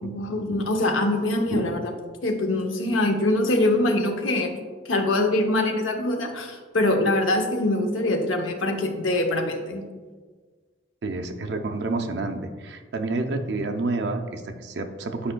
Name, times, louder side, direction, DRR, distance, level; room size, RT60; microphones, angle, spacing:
voice 1, 0.0-1.9 2.2-4.5 4.9-9.8, left 1 dB, 90° left, 4 dB, 0.8 m, -23 dB
voice 2, 11.0-15.3, right 3 dB, 60° right, 5 dB, 0.5 m, -29 dB
8.6 x 5.0 x 2.2 m, 1.5 s
head